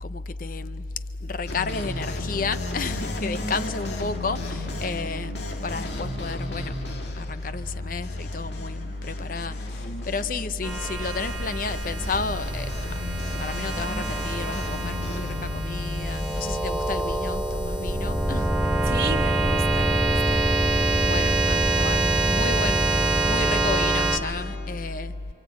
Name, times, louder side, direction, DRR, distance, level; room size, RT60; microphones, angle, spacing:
voice 1, 0.0-0.9 1.2-6.8 7.1-18.5 21.0-25.1, left 3 dB, 45° left, 12 dB, 0.6 m, -31 dB
sound 1, 1.5-16.5, left 1 dB, 65° left, 2.0 m, -36 dB
sound 2, 10.6-24.2, right 2 dB, 5° right, 2.2 m, -25 dB
voice 2, 18.8-20.9, right 3 dB, 50° right, -3 dB, 1.4 m, -35 dB
28.0 x 23.5 x 8.5 m, 2.9 s
head